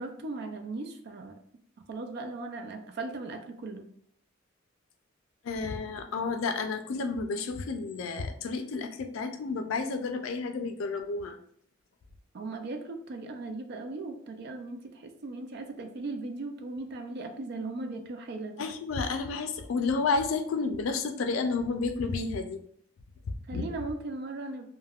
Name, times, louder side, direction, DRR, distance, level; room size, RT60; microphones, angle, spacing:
voice 1, 0.0-1.4 1.9-3.9 12.3-18.6 23.5-24.7, right 3 dB, 55° right, 6 dB, 0.4 m, -38 dB
voice 2, 5.4-11.4 18.6-22.6 23.3-23.6, left 4 dB, 85° left, 7 dB, 0.4 m, -31 dB
3.4 x 2.1 x 2.3 m, 0.64 s
head